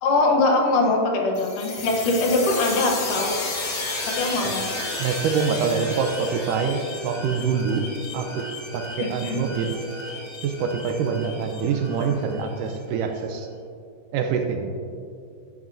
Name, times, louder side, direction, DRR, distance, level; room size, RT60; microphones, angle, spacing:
voice 1, 0.0-3.4 4.1-4.7 9.0-9.4, left 2 dB, 70° left, 2 dB, 2.4 m, -22 dB
sound 1, 1.3-12.8, left 2 dB, 50° left, 1.6 m, -33 dB
voice 2, 5.0-7.9 8.1-8.5 8.7-9.7 10.4-13.5 14.1-14.7, right 6 dB, 80° right, 4 dB, 2.1 m, -25 dB
11.0 x 10.5 x 2.6 m, 2.3 s
omnidirectional pair, 4.1 m